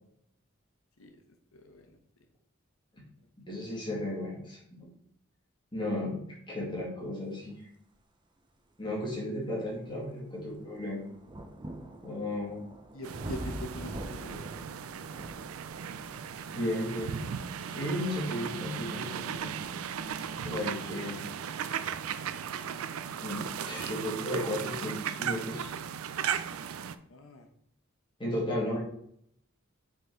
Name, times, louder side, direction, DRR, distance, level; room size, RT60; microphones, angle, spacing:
voice 1, 1.5-2.0 3.5-3.9 12.9-14.6 27.1-27.5, left 1 dB, 75° left, 4 dB, 1.0 m, -44 dB
voice 2, 3.5-4.9 5.7-6.2 6.5-7.6 8.8-11.0 12.0-12.7 16.5-17.2 17.7-19.4 20.4-21.2 23.2-25.7 28.2-28.8, left 1 dB, 25° left, -5 dB, 2.0 m, -34 dB
sound 1, 8.4-8.5 9.1-23.7 24.6-24.7, right 1 dB, 20° right, 0.6 m, -46 dB
sound 2, 13.0-26.9, right 8 dB, 85° right, 0.4 m, -37 dB
6.5 x 3.8 x 4.5 m, 0.69 s
head